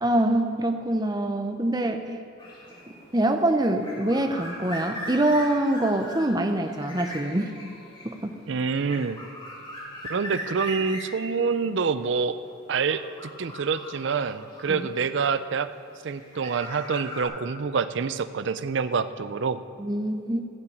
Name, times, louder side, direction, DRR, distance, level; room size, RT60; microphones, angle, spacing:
voice 1, 0.0-2.2 2.9-7.5 8.0-8.3 14.7-14.8 19.8-20.4, right 1 dB, 20° right, 6 dB, 0.7 m, -25 dB
sound 1, 2.4-15.3 16.0-17.2, left 1 dB, 25° left, 2.1 m, -40 dB
voice 2, 8.5-9.2 10.1-12.4 12.7-13.0 13.4-15.7 16.0-19.6, right 5 dB, 60° right, 12 dB, 0.4 m, -26 dB
15.5 x 5.8 x 8.5 m, 2.5 s
head